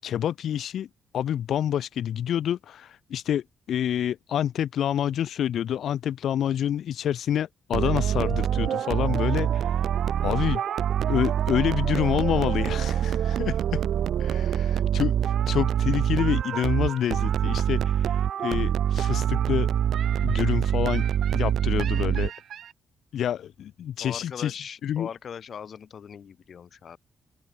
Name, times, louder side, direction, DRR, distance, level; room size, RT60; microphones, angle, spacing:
voice 1, 0.0-0.9 1.1-9.9 10.2-10.6 11.1-13.8 14.2-19.7 20.2-21.0 21.3-22.3 23.1-25.1, left 10 dB, 60° left, 1.8 m, -28 dB
sound 1, 7.7-22.7, right 10 dB, 60° right, 0.4 m, -25 dB
voice 2, 24.0-27.0, left 7 dB, 45° left, 3.5 m, -40 dB
open air
cardioid pair, 165°, 0 cm